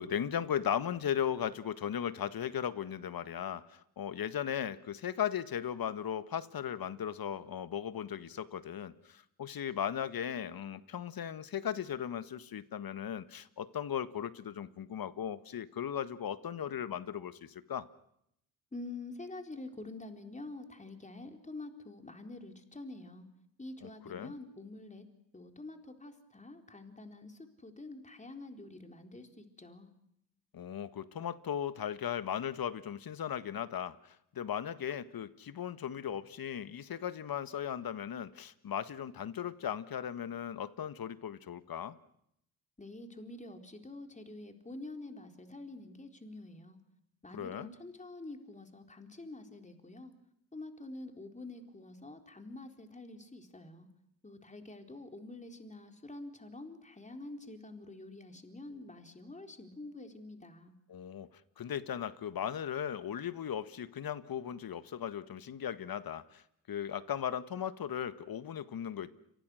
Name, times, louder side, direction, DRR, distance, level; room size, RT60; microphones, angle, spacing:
voice 1, 0.0-17.9 23.8-24.3 30.5-42.0 47.3-47.7 60.9-61.3 61.6-66.4 66.7-69.1, left 9 dB, 45° left, 13 dB, 1.6 m, -37 dB
voice 2, 18.7-23.3 23.6-25.0 25.3-29.9 42.8-46.8 47.2-50.1 50.5-53.9 54.2-60.7, left 2 dB, 15° left, 5 dB, 4.2 m, -47 dB
30.0 x 25.0 x 6.4 m, 0.76 s
supercardioid pair, 65°, 47 cm